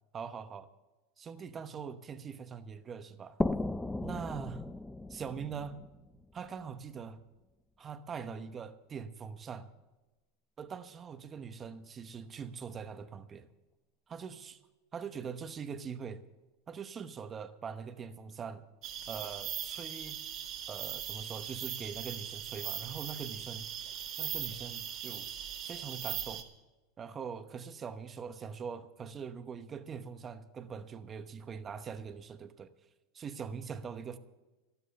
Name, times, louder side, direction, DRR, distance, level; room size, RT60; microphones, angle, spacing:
voice 1, 0.1-0.7 1.2-3.4 4.0-4.6 5.1-5.8 6.3-7.2 7.8-9.7 10.6-13.5 14.1-14.6 14.9-16.2 16.7-18.6 19.1-20.2 20.7-23.7 24.2-25.3 25.6-26.4 27.0-32.7 33.1-34.2, right 6 dB, 25° right, 0.9 m, -42 dB
sound 1, 3.4-6.9, left 2 dB, 10° left, 0.5 m, -36 dB
sound 2, 18.8-26.4, right 10 dB, 50° right, 2.0 m, -40 dB
12.5 x 12.5 x 6.8 m
supercardioid pair, 120°, 0 cm